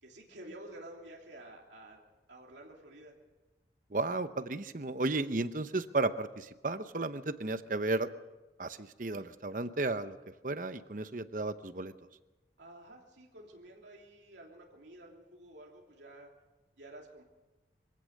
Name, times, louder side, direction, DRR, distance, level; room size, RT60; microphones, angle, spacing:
voice 1, 0.0-2.0 2.3-3.1 12.6-16.3 16.8-17.2, right 1 dB, 85° right, -1 dB, 3.1 m, -51 dB
voice 2, 3.9-8.1 8.6-10.2 10.4-11.9, right 2 dB, 45° right, 11 dB, 0.9 m, -34 dB
24.5 x 16.5 x 6.5 m, 1.1 s
head